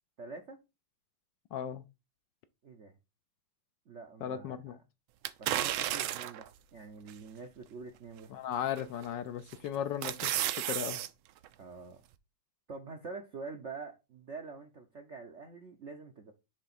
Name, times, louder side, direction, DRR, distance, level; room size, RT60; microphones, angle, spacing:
voice 1, 0.2-0.6 2.6-2.9 3.9-4.8 5.4-8.3 11.6-12.0 12.7-16.3, right 4 dB, 60° right, 0.7 m, -46 dB
voice 2, 1.5-1.8 4.2-4.8 8.3-10.3 10.7-11.0, left 9 dB, 75° left, 1.1 m, -36 dB
sound 1, 5.2-6.5 7.1-7.2 8.8-9.1 9.5-11.1 11.4-11.5, right 13 dB, 80° right, 1.4 m, -33 dB
6.5 x 3.4 x 5.8 m
omnidirectional pair, 2.3 m